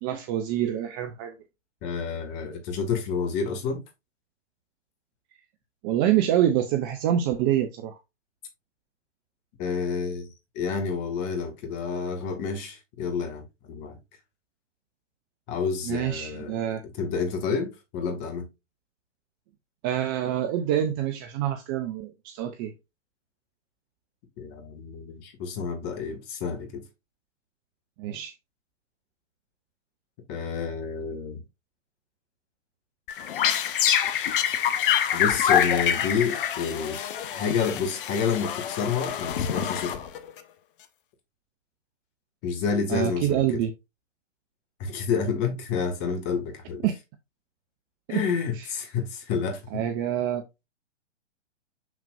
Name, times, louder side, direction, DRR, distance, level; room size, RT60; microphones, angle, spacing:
voice 1, 0.0-1.4 5.8-8.0 15.8-16.8 19.8-22.7 28.0-28.3 42.9-43.7 46.8-46.9 48.1-48.2 48.6-48.7 49.7-50.4, right 11 dB, 20° right, 0.5 m, -26 dB
voice 2, 1.8-3.8 9.6-10.3 10.6-14.0 15.5-16.6 16.9-18.5 24.4-26.8 30.3-31.4 35.1-40.0 42.4-43.6 44.8-46.9 48.1-49.8, left 5 dB, 30° left, 1.9 m, -29 dB
sound 1, 33.1-40.4, left 9 dB, 45° left, 0.9 m, -26 dB
6.6 x 6.2 x 2.5 m
figure-of-eight pair, 120°, 37 cm